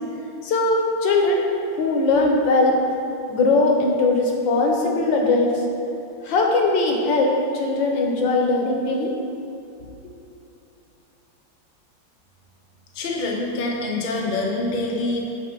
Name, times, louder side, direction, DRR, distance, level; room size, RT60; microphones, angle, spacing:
voice 1, 0.4-1.4 1.7-2.8 3.3-5.5 6.2-9.1, left 3 dB, 75° left, 1 dB, 1.6 m, -20 dB
voice 2, 12.9-15.2, left 2 dB, 50° left, -1 dB, 0.6 m, -25 dB
7.8 x 4.8 x 4.5 m, 2.8 s
omnidirectional pair, 2.1 m